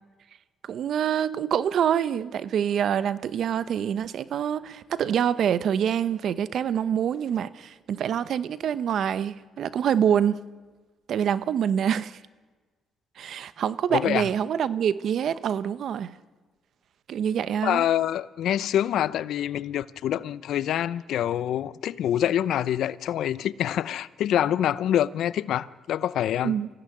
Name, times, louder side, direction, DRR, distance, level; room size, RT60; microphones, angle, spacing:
voice 1, 0.6-10.4 11.1-12.2 13.2-16.1 17.1-17.9 26.4-26.7, right 9 dB, 65° right, 1.0 m, -26 dB
voice 2, 13.9-14.2 17.6-26.6, left 11 dB, 75° left, 0.7 m, -26 dB
26.0 x 16.5 x 9.9 m
cardioid pair, 90°, 0 cm